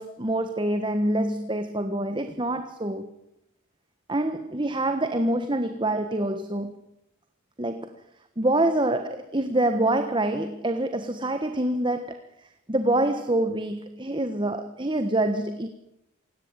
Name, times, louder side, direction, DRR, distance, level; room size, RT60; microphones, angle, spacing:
voice 1, 0.0-3.1 4.1-6.7 7.6-7.9 8.4-12.2 12.7-15.7, right 1 dB, 20° right, 1.3 m, -26 dB
28.0 x 18.0 x 9.0 m
head